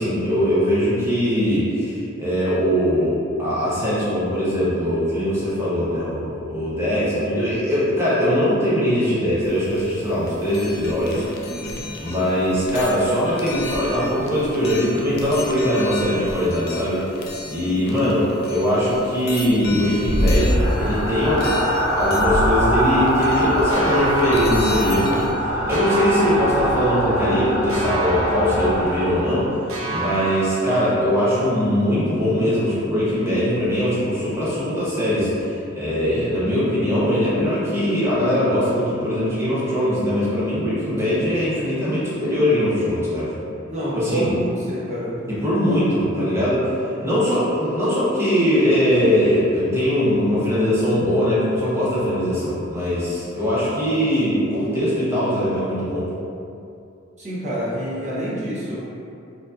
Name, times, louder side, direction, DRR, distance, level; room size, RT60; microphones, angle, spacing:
voice 1, 0.0-11.3 11.9-17.0 17.5-29.5 29.9-43.3 43.9-44.3 45.3-46.7 47.0-56.1, equal, 15° right, -10 dB, 0.8 m, -21 dB
sound 1, 9.4-25.3, left 3 dB, 50° left, 0.4 m, -36 dB
voice 2, 11.5-11.8 29.8-30.0 41.1-41.3 43.7-45.6 46.9-47.2 57.2-58.9, equal, 35° right, -9 dB, 1.0 m, -28 dB
sound 2, 19.6-29.6, equal, 85° left, 0.8 m, -23 dB
sound 3, 23.7-25.4 25.7-27.3 27.7-29.4 29.7-31.4, right 2 dB, 80° right, 0.5 m, -31 dB
4.3 x 2.7 x 2.5 m, 2.6 s
head